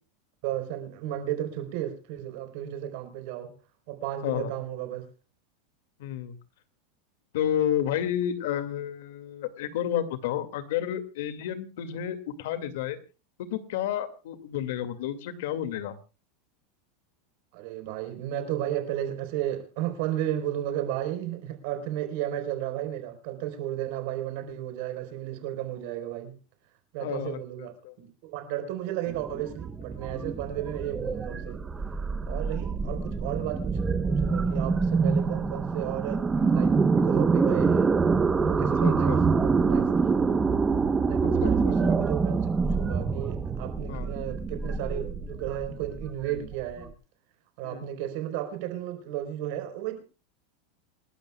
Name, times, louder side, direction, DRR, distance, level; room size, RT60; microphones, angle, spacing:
voice 1, 0.4-3.5 3.9-5.1 17.5-26.4 26.9-31.6 32.2-38.0 38.4-40.5 41.1-46.9 47.6-50.0, right 12 dB, 55° right, 4.3 m, -34 dB
voice 2, 6.0-6.4 7.3-13.0 13.4-16.0 27.0-27.9 30.1-30.3 38.8-39.2 41.4-41.5 41.9-42.0 43.9-44.1 47.6-47.8, left 10 dB, 70° left, 2.2 m, -31 dB
sound 1, 29.1-46.9, right 4 dB, 15° right, 1.0 m, -26 dB
28.0 x 12.5 x 2.3 m
supercardioid pair, 160°, 0 cm